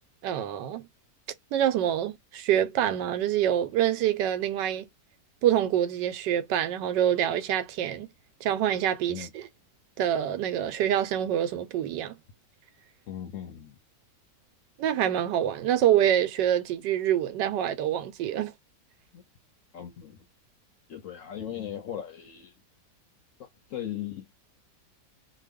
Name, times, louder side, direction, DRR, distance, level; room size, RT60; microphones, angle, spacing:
voice 1, 0.2-0.9 1.5-4.9 5.4-8.1 8.4-9.5 10.0-12.2 14.8-18.5, right 10 dB, 90° right, 1.3 m, -26 dB
voice 2, 13.1-13.8 19.1-19.2 19.7-20.2 20.9-22.6 23.4-24.4, left 10 dB, 65° left, 0.8 m, -38 dB
2.8 x 2.3 x 3.4 m
omnidirectional pair, 1.8 m